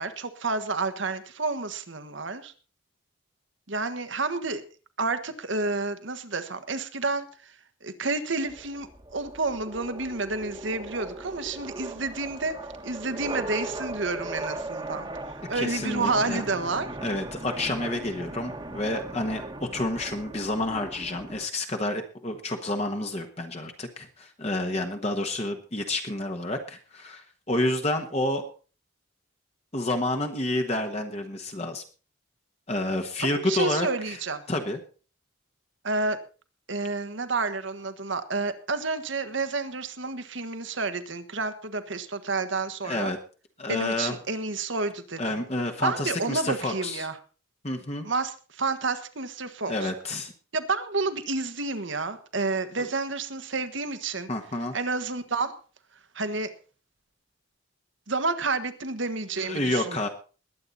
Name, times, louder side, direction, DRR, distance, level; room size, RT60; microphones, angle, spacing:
voice 1, 0.0-2.5 3.7-4.6 5.0-7.5 7.8-12.5 12.8-15.1 15.5-17.0 33.2-34.4 35.8-36.2 36.7-43.1 43.7-45.4 45.8-47.2 48.0-49.9 50.5-54.3 54.7-55.6 56.1-56.5 58.1-60.1, right 3 dB, 65° right, 10 dB, 1.4 m, -30 dB
sound 1, 8.5-21.5, right 2 dB, 20° right, 1.3 m, -38 dB
voice 2, 15.5-16.4 17.0-28.5 29.7-31.8 32.7-34.2 34.5-34.8 42.8-43.2 43.6-44.2 45.2-47.1 47.6-48.1 49.7-50.3 52.8-52.9 54.3-54.7 59.4-60.1, left 1 dB, 30° left, 4 dB, 1.2 m, -29 dB
21.0 x 8.7 x 4.1 m, 0.36 s
head